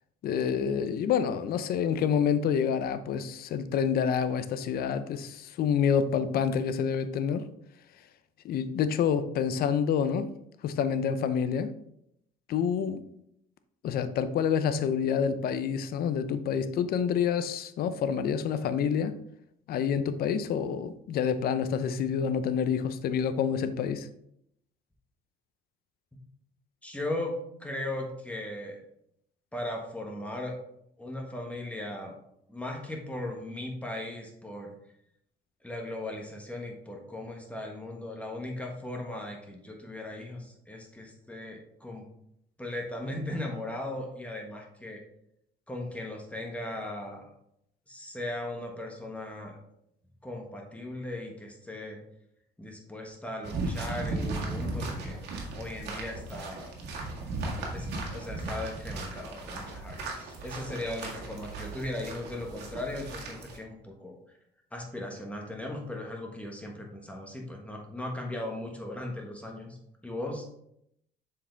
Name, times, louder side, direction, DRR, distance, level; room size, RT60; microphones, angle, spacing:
voice 1, 0.2-7.5 8.4-10.3 10.6-11.7 12.5-13.0 13.8-19.2 19.7-24.1, left 7 dB, 65° left, 0.6 m, -28 dB
voice 2, 26.8-27.3 27.6-28.8 29.5-30.5 31.0-32.1 32.5-34.7 35.6-42.0 42.6-45.0 45.7-47.3 47.9-49.6 50.2-52.0 52.6-55.3 55.5-56.7 57.7-57.9 58.1-64.4 64.7-69.8 70.0-70.4, left 1 dB, 10° left, 1.4 m, -38 dB
sound 1, 53.4-63.6, right 2 dB, 85° right, 1.7 m, -36 dB
7.2 x 4.9 x 3.4 m
cardioid pair, 110°, 17 cm